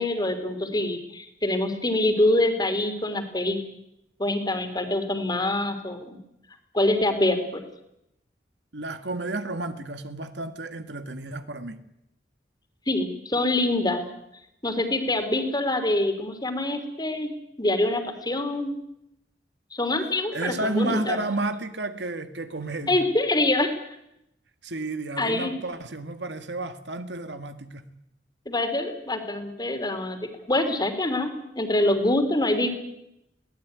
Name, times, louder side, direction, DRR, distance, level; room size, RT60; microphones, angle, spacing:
voice 1, 0.0-3.6 4.2-6.2 6.7-7.6 12.9-14.0 14.6-17.3 17.6-18.7 19.7-21.2 22.9-23.8 25.2-25.5 28.4-32.7, left 1 dB, 25° left, 3.3 m, -25 dB
voice 2, 8.7-11.8 20.3-23.0 24.6-27.9, right 2 dB, 75° right, 1.9 m, -31 dB
22.5 x 18.0 x 9.6 m
head